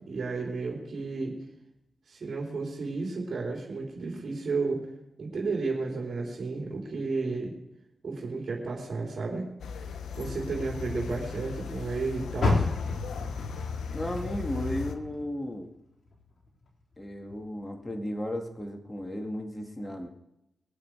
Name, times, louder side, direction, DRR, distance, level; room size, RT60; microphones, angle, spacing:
voice 1, 0.1-1.4 2.1-4.9 5.2-7.5 8.0-9.5 10.2-12.7, right 3 dB, 60° right, -2 dB, 3.9 m, -32 dB
sound 1, 9.6-14.9, left 6 dB, 85° left, 1.0 m, -37 dB
Car, 12.4-15.6 16.0-17.4 17.9-18.0 18.6-18.7, left 3 dB, 60° left, 3.5 m, -31 dB
voice 2, 13.9-15.7 17.0-20.1, equal, 20° left, 3 dB, 2.2 m, -34 dB
22.0 x 7.9 x 4.9 m, 0.88 s
cardioid pair, 55°, 0 cm